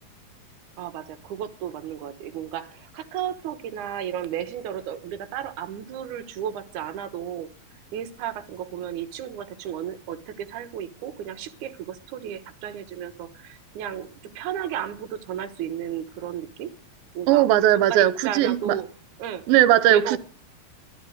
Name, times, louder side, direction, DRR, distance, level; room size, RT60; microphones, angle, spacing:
voice 1, 0.8-7.5 7.9-16.7 17.1-18.9 19.2-19.5 19.9-20.2, right 10 dB, 65° right, 2.4 m, -33 dB
voice 2, 17.3-18.7 19.5-20.2, right 13 dB, 80° right, 2.6 m, -18 dB
12.5 x 12.0 x 6.4 m
omnidirectional pair, 4.2 m